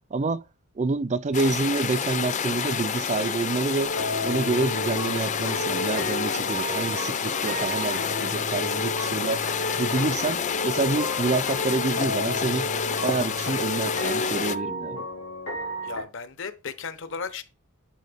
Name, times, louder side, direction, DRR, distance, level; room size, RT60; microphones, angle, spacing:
voice 1, 0.1-0.4 0.8-3.9 4.2-9.4 9.8-12.7 13.0-15.1, right 3 dB, 30° right, 0.4 m, -27 dB
sound 1, 1.3-14.6, left 7 dB, 35° left, 0.5 m, -29 dB
sound 2, 3.8-16.0, left 1 dB, 90° left, 3.0 m, -32 dB
voice 2, 15.8-17.4, left 5 dB, 60° left, 1.0 m, -35 dB
10.5 x 4.3 x 3.5 m
head